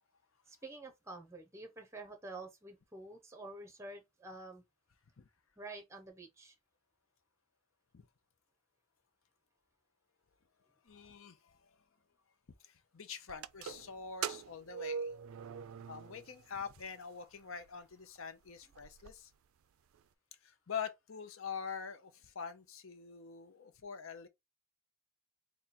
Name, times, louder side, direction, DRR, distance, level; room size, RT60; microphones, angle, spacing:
voice 1, 0.5-4.6 5.6-6.5, right 2 dB, 15° right, 0.9 m, -49 dB
voice 2, 10.8-11.6 12.6-15.1 15.9-19.3 20.4-24.3, left 6 dB, 70° left, 0.7 m, -45 dB
sound 1, 13.3-16.4 16.7-16.8 17.7-17.8 18.2-18.3 18.5-19.1, right 7 dB, 75° right, 0.3 m, -42 dB
3.8 x 2.3 x 4.3 m
head